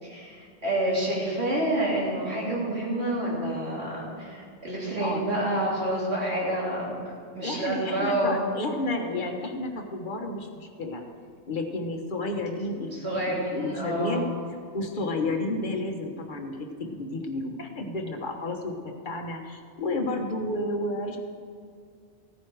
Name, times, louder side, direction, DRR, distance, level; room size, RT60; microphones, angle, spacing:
voice 1, 0.0-6.9 7.4-8.4 13.0-14.2, right 1 dB, 65° right, -6 dB, 3.6 m, -28 dB
voice 2, 7.4-11.0 11.5-18.7 19.0-21.2, left 2 dB, 45° left, 3 dB, 1.4 m, -31 dB
16.0 x 9.5 x 4.8 m, 2.2 s
omnidirectional pair, 1.2 m